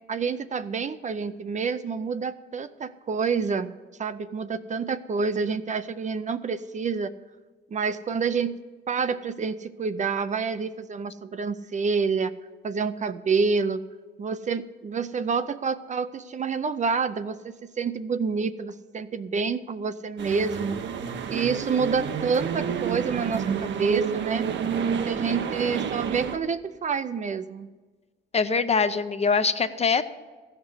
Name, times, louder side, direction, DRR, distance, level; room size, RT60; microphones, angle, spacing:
voice 1, 0.1-3.7 4.0-7.1 7.7-8.6 8.9-12.3 12.6-13.8 14.2-20.8 21.3-24.5 25.1-27.7, right 5 dB, 40° right, 12 dB, 0.5 m, -28 dB
sound 1, 20.2-26.4, right 7 dB, 65° right, 0.9 m, -29 dB
voice 2, 28.3-30.0, left 5 dB, 30° left, 11 dB, 0.7 m, -23 dB
14.5 x 5.9 x 8.0 m, 1.3 s
cardioid pair, 90°, 20 cm